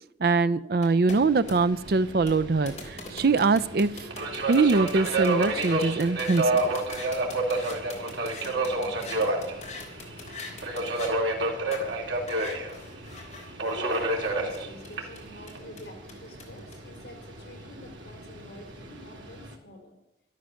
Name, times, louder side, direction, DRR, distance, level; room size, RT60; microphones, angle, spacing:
voice 1, 0.2-4.1 4.5-6.7, right 4 dB, 55° right, 16 dB, 0.5 m, -23 dB
sound 1, 0.8-11.1 11.7-11.8 12.3-16.7, left 3 dB, 35° left, 3.6 m, -43 dB
Subway metro underground, 1.1-19.5, right 2 dB, 90° right, 2.9 m, -31 dB
voice 2, 13.7-20.0, left 1 dB, 60° left, 2 dB, 4.8 m, -46 dB
12.5 x 12.5 x 6.4 m, 0.95 s
head